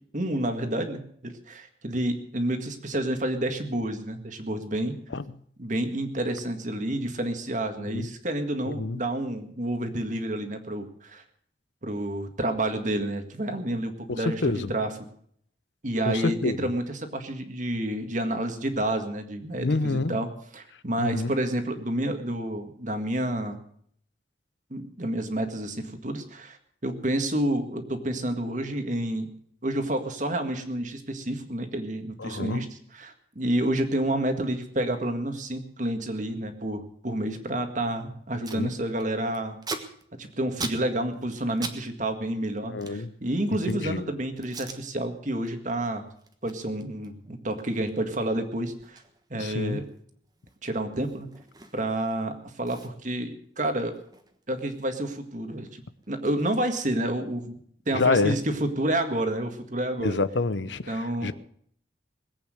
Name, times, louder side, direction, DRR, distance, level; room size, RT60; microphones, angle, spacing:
voice 1, 0.1-5.0 5.6-11.2 11.8-14.9 15.8-23.6 24.7-26.6 26.8-29.3 29.6-39.6 40.2-46.0 46.4-49.0 49.3-49.8 50.6-51.3 51.7-54.0 54.5-55.8 56.1-57.6 57.9-60.2 60.9-61.3, right 1 dB, 45° right, 1.9 m, -29 dB
voice 2, 8.7-9.0 14.1-14.7 16.1-16.6 19.6-20.2 21.0-21.3 32.2-32.7 38.4-38.7 42.6-43.1 43.7-44.0 49.4-49.8 57.9-58.4 60.0-61.3, left 3 dB, 80° left, 0.8 m, -27 dB
Packing tape duct tape, 37.9-38.0 38.2-38.6 38.9-41.8 42.1-43.9 44.4-44.8 45.3-45.5 45.8-52.1 52.3-52.4 52.6-55.0 55.3-57.3, right 3 dB, 20° right, 1.4 m, -43 dB
21.0 x 8.6 x 6.5 m
head